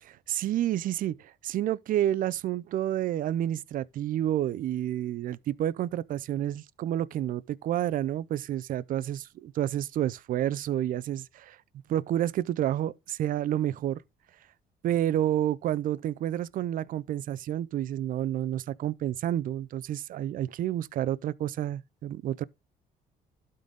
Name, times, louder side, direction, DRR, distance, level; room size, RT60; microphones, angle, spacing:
voice 1, 0.0-11.6 11.9-14.0 14.8-22.4, right 12 dB, 55° right, 0.5 m, -29 dB
12.0 x 4.0 x 3.5 m
cardioid pair, 110°, 17 cm